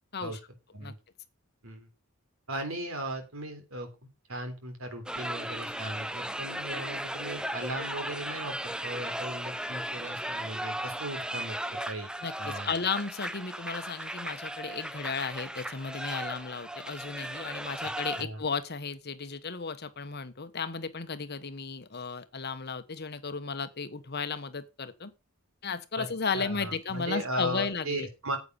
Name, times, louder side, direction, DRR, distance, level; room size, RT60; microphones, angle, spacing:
voice 1, 2.5-3.9 4.3-11.6 11.8-12.1 12.4-12.7 18.2-18.4 26.0-26.1 26.3-28.4, right 1 dB, 70° right, 3.4 m, -37 dB
sound 1, 5.1-18.2, right 1 dB, 5° right, 0.5 m, -36 dB
voice 2, 12.2-25.1 25.6-28.1, left 5 dB, 50° left, 1.1 m, -34 dB
9.5 x 8.4 x 5.4 m
head